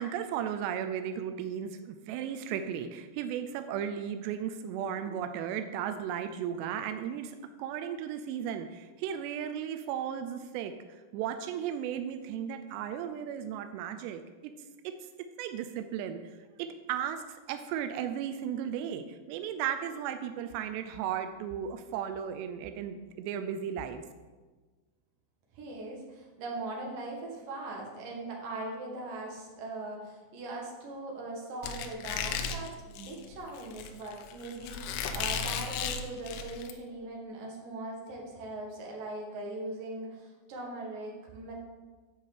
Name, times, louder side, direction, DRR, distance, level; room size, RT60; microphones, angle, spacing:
voice 1, 0.0-14.5 14.8-14.9 15.4-24.0, right 9 dB, 85° right, 8 dB, 2.4 m, -35 dB
voice 2, 25.5-41.5, right 2 dB, 55° right, -1 dB, 2.9 m, -40 dB
Squeak, 31.6-36.7, left 6 dB, 80° left, 3.1 m, -35 dB
9.3 x 4.9 x 7.4 m, 1.3 s
omnidirectional pair, 5.6 m